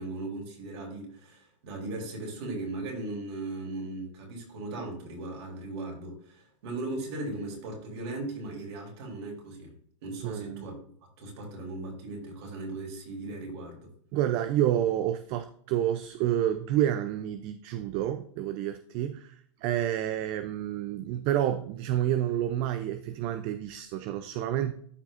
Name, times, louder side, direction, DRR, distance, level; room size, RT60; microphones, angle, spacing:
voice 1, 0.0-9.7 10.0-13.9, right 2 dB, 55° right, 0 dB, 3.3 m, -38 dB
voice 2, 10.2-10.7 14.1-19.3 19.6-24.7, right 11 dB, 35° right, 10 dB, 0.5 m, -29 dB
13.0 x 4.7 x 2.5 m, 0.62 s
hypercardioid pair, 135°, 16 cm